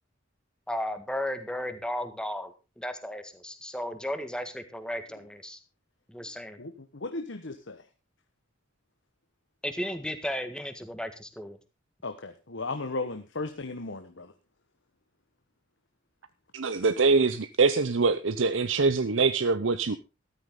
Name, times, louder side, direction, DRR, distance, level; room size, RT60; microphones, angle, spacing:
voice 1, 0.7-5.6 6.1-6.6 9.6-11.6, left 1 dB, 5° left, 9 dB, 1.7 m, -34 dB
voice 2, 6.6-7.8 12.0-14.3, left 3 dB, 65° left, 8 dB, 1.2 m, -36 dB
voice 3, 16.5-20.0, right 4 dB, 70° right, 12 dB, 0.7 m, -24 dB
13.5 x 13.0 x 3.8 m, 0.28 s
head